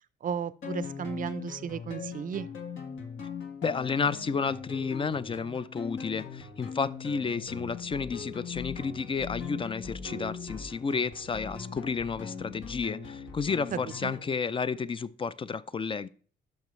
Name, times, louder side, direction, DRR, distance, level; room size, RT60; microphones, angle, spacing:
voice 1, 0.2-2.5 13.7-14.2, right 7 dB, 45° right, 0.5 m, -34 dB
sound 1, 0.6-14.3, left 5 dB, 75° left, 1.6 m, -40 dB
voice 2, 3.6-16.1, left 5 dB, 25° left, 0.4 m, -31 dB
12.0 x 5.5 x 3.1 m
cardioid pair, 90°, 20 cm